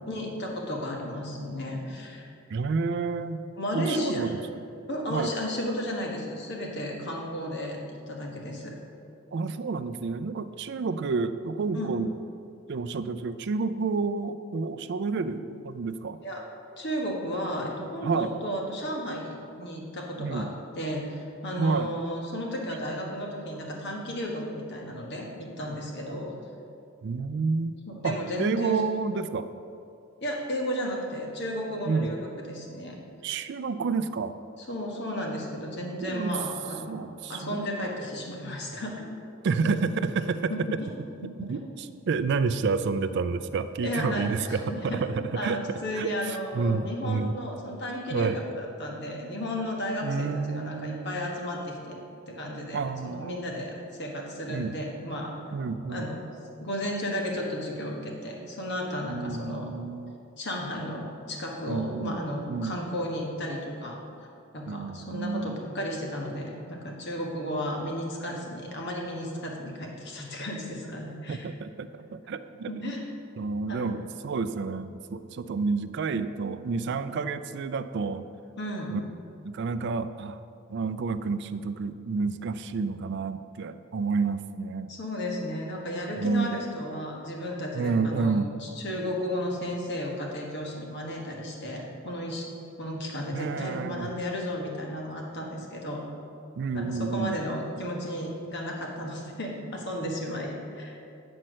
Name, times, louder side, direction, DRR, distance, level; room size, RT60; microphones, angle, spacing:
voice 1, 0.1-2.2 3.6-4.3 4.9-8.7 11.7-11.9 16.2-16.5 16.8-20.5 20.7-26.3 27.9-28.8 30.2-33.0 34.7-37.0 37.3-39.1 39.6-39.8 40.5-40.9 41.2-41.7 43.8-45.0 45.3-52.0 52.3-55.3 55.9-56.2 56.6-59.7 60.4-64.0 64.5-71.5 72.7-73.0 73.7-73.9 78.6-79.0 84.9-92.5 92.8-96.0 96.7-101.0, equal, 55° left, -1 dB, 1.4 m, -33 dB
voice 2, 2.5-3.4 3.7-4.4 5.1-5.3 9.3-12.1 12.7-16.2 18.0-18.3 20.2-20.5 21.6-21.9 27.0-27.7 28.0-29.5 31.9-32.1 33.2-34.4 36.0-36.4 36.9-37.9 38.4-38.5 39.4-40.5 41.4-45.6 46.0-47.3 48.1-48.4 50.0-51.3 52.7-53.5 54.5-54.7 55.5-56.1 59.1-60.1 61.7-62.2 62.5-62.8 64.7-65.6 71.3-73.0 73.4-78.3 78.9-79.0 79.4-80.4 80.7-84.9 86.2-86.6 87.7-88.5 93.3-94.1 96.6-97.4, right 4 dB, 55° right, 11 dB, 0.4 m, -30 dB
9.4 x 4.3 x 6.3 m, 2.5 s
head